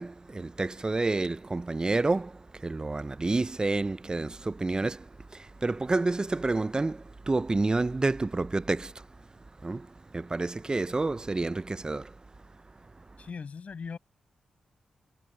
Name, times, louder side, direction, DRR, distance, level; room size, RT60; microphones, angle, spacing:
voice 1, 0.0-9.1 9.6-12.1, right 3 dB, 30° right, 0.7 m, -29 dB
voice 2, 13.2-14.0, left 5 dB, 60° left, 6.9 m, -39 dB
supercardioid pair, 40°, 3 cm